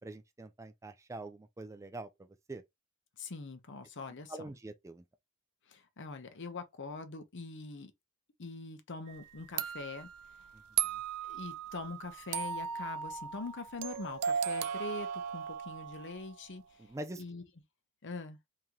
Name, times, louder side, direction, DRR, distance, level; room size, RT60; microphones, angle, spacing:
voice 1, 0.0-2.1 2.5-2.6 4.3-5.0 16.8-17.2, right 2 dB, 15° right, 0.4 m, -44 dB
voice 2, 3.2-4.4 5.7-7.9 8.4-10.1 10.4-10.5 11.2-17.4 18.0-18.4, left 3 dB, 55° left, 0.8 m, -43 dB
sound 1, 9.1-9.2 9.6-16.3, right 8 dB, 85° right, 0.4 m, -37 dB
3.0 x 2.8 x 3.7 m
head